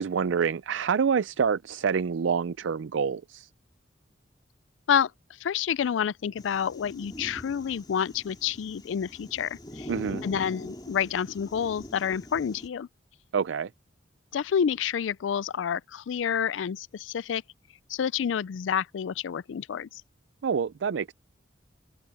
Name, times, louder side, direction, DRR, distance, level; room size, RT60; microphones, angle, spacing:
voice 1, 0.0-3.5 9.9-10.2 13.3-13.7 20.4-21.1, right 6 dB, 85° right, 0.4 m, -27 dB
voice 2, 5.4-9.9 10.2-12.9 14.3-17.4 17.9-20.0, left 8 dB, 90° left, 0.4 m, -28 dB
sound 1, 6.4-12.7, left 1 dB, 25° left, 3.7 m, -43 dB
head